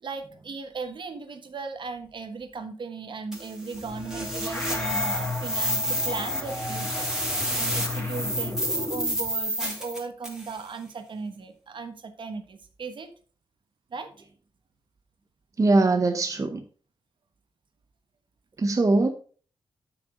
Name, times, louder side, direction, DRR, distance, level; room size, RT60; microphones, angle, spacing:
voice 1, 0.0-7.1 7.6-13.1 13.9-14.1, right 4 dB, 55° right, 1.2 m, -37 dB
sound 1, 3.3-10.5, equal, 5° right, 2.2 m, -30 dB
sound 2, 3.7-9.3, left 2 dB, 20° left, 2.7 m, -35 dB
voice 2, 15.6-16.6 18.6-19.1, right 2 dB, 35° right, 0.7 m, -21 dB
7.9 x 5.9 x 3.8 m
wide cardioid pair, 105°, 10 cm